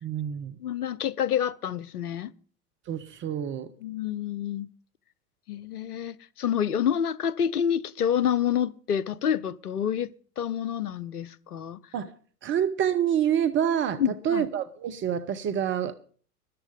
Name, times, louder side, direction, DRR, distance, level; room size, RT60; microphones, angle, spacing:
voice 1, 0.0-0.6 2.9-3.7 11.9-12.1 12.4-16.0, right 9 dB, 25° right, 1.0 m, -27 dB
voice 2, 0.6-2.3 3.8-4.7 5.5-10.1 10.4-11.8 14.0-14.4, left 9 dB, 75° left, 0.9 m, -28 dB
13.5 x 12.0 x 5.3 m
figure-of-eight pair, 95°, 46 cm